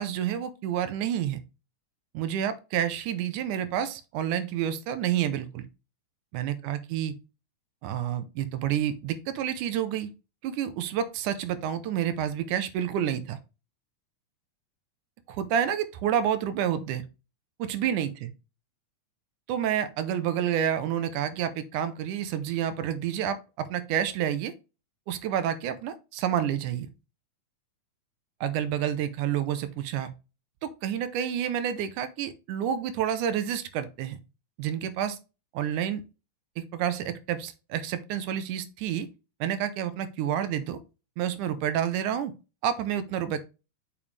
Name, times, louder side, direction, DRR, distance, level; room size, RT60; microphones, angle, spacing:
voice 1, 0.0-1.4 2.1-5.7 6.3-7.1 7.8-10.1 10.4-13.4 15.3-17.0 17.6-18.3 19.5-24.5 25.1-26.9 28.4-30.1 30.6-34.2 34.6-35.2 35.5-36.0 36.6-39.1 39.4-40.8 41.2-42.3 42.6-43.4, right 9 dB, 90° right, 2.3 m, -29 dB
7.2 x 5.2 x 3.3 m
omnidirectional pair, 3.5 m